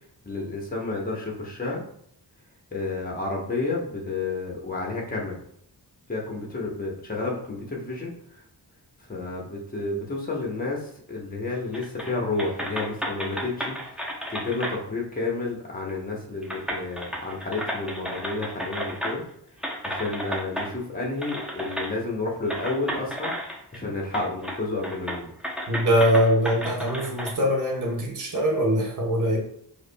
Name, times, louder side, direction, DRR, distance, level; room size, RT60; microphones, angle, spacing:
voice 1, 0.2-1.8 2.7-5.4 6.1-8.1 9.1-19.2 19.8-23.3 23.7-25.3, left 3 dB, 20° left, -2 dB, 1.0 m, -31 dB
sound 1, 11.7-12.1 12.4-14.8 15.9-16.0 16.4-19.3 19.6-20.7 21.2-21.9 22.5-23.8 24.1-24.6 24.8-27.3, equal, ahead, 0.6 m, -32 dB
voice 2, 25.7-29.4, equal, 50° right, -2 dB, 0.9 m, -22 dB
4.8 x 2.6 x 2.2 m, 0.68 s
wide cardioid pair, 85°, 41 cm